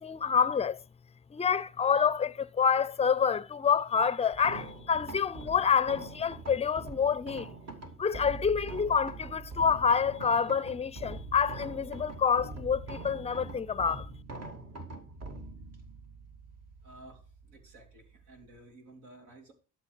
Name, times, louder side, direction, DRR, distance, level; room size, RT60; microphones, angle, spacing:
voice 1, 0.0-0.8 1.3-7.5 8.0-14.1, left 6 dB, 20° left, 0.5 m, -27 dB
sound 1, 4.3-18.6, right 3 dB, 55° right, 2.4 m, -44 dB
voice 2, 16.8-19.5, right 2 dB, 85° right, 3.3 m, -53 dB
12.5 x 6.8 x 4.8 m
cardioid pair, 90°, 30 cm